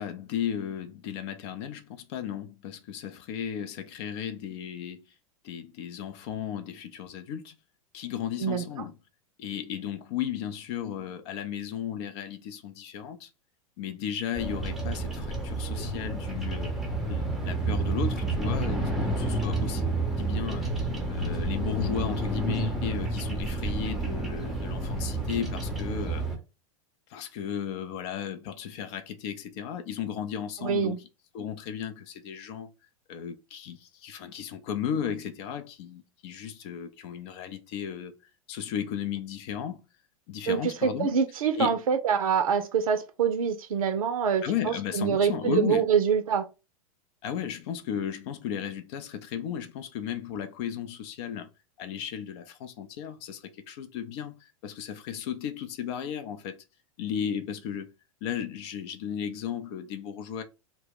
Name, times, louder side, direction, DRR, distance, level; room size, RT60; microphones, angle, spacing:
voice 1, 0.0-5.1 5.4-7.6 7.9-8.9 9.4-13.3 13.8-16.7 17.1-19.8 20.2-20.7 21.1-26.2 27.1-31.0 31.3-32.7 33.1-38.1 38.5-39.8 40.3-41.1 41.5-41.8 44.4-45.9 47.2-51.5 51.8-56.6 57.0-57.9 58.2-60.4, left 9 dB, 50° left, 0.5 m, -35 dB
voice 2, 8.4-8.9 30.6-31.0 40.5-46.5, right 7 dB, 70° right, 0.5 m, -25 dB
Bird vocalization bird call bird song, 14.4-26.4, right 2 dB, ahead, 0.7 m, -30 dB
2.1 x 2.0 x 3.5 m
hypercardioid pair, 100°, 18 cm